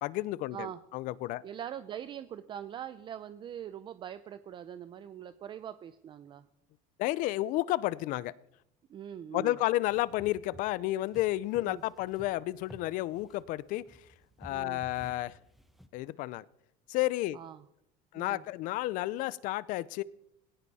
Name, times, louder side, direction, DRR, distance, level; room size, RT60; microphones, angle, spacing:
voice 1, 0.0-1.4 7.0-8.3 9.3-14.1 14.4-15.4 15.9-16.4 16.9-17.4 18.1-20.0, left 17 dB, 55° left, 0.6 m, -31 dB
voice 2, 1.4-6.5 8.9-9.6 11.6-11.8 14.5-14.8 17.3-17.6 18.1-18.4, right 9 dB, 30° right, 0.6 m, -42 dB
sound 1, 9.9-15.9, equal, ahead, 1.1 m, -54 dB
19.0 x 17.0 x 4.2 m
cardioid pair, 150°, 16 cm